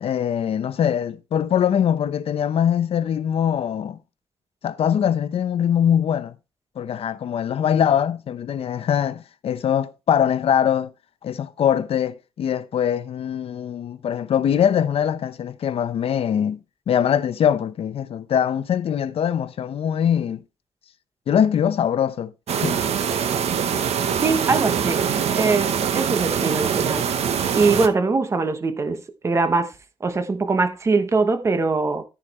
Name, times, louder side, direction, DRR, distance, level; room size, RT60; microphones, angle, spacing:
voice 1, 0.0-4.0 4.6-6.3 6.8-10.9 11.2-16.6 16.9-20.4 21.3-22.3 22.6-22.8, left 9 dB, 65° left, 0.8 m, -22 dB
sound 1, 22.5-27.9, right 7 dB, 80° right, 1.1 m, -23 dB
voice 2, 24.2-25.0 25.4-27.1 27.5-29.7 30.0-32.0, right 3 dB, 25° right, 1.0 m, -22 dB
14.0 x 5.1 x 4.2 m
wide cardioid pair, 165°, 11 cm